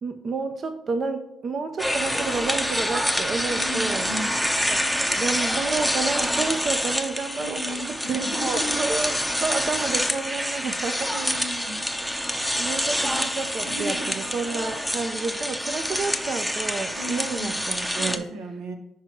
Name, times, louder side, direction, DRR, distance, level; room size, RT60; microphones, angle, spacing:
voice 1, 0.0-4.1 4.7-4.9 5.2-9.1 9.4-11.1 12.6-18.3, right 4 dB, 50° right, 8 dB, 0.5 m, -30 dB
sound 1, 1.8-18.2, equal, ahead, 0.6 m, -27 dB
voice 2, 3.6-4.4 7.4-8.8 11.1-11.8 13.6-14.1 16.9-17.6 17.9-18.8, right 1 dB, 90° right, 5 dB, 0.8 m, -35 dB
5.6 x 4.7 x 4.5 m, 0.83 s
supercardioid pair, 70°, 0 cm